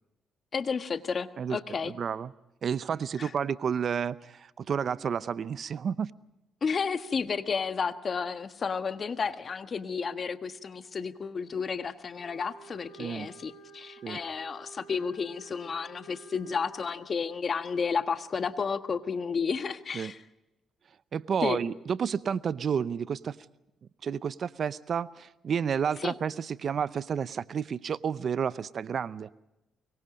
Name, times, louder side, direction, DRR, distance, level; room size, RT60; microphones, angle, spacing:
voice 1, 0.5-1.9 3.2-3.3 6.6-20.2 21.4-21.6 26.0-26.1, left 5 dB, 45° left, 10 dB, 1.4 m, -32 dB
voice 2, 1.8-2.3 2.6-6.1 13.0-13.3 14.0-14.2 19.9-20.1 21.1-23.4 24.0-29.3, right 7 dB, 55° right, 17 dB, 0.7 m, -31 dB
Wind instrument woodwind instrument, 12.1-16.9, right 4 dB, 75° left, 6.0 m, -52 dB
24.5 x 22.5 x 5.1 m, 0.94 s
cardioid pair, 90°, 0 cm